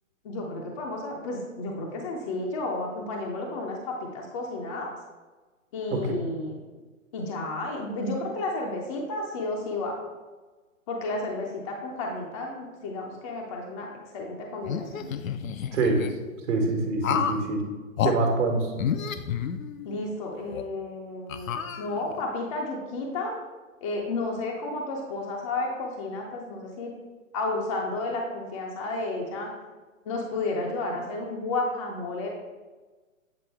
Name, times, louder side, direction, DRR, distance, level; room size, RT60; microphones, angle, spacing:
voice 1, 0.2-4.9 5.7-6.5 7.1-10.0 10.9-13.9 14.1-15.1 19.8-23.3 23.8-26.9 27.3-29.5 30.1-32.3, left 2 dB, 25° left, 0 dB, 0.5 m, -32 dB
sound 1, 14.6-16.1 17.0-17.5 18.0-18.2 18.8-20.0 20.5-20.6 21.3-22.2, left 8 dB, 75° left, 0.6 m, -30 dB
voice 2, 15.7-16.0 16.5-17.6 18.0-18.7, right 3 dB, 60° right, 2 dB, 1.3 m, -25 dB
7.9 x 3.8 x 3.4 m, 1.3 s
hypercardioid pair, 140°, 41 cm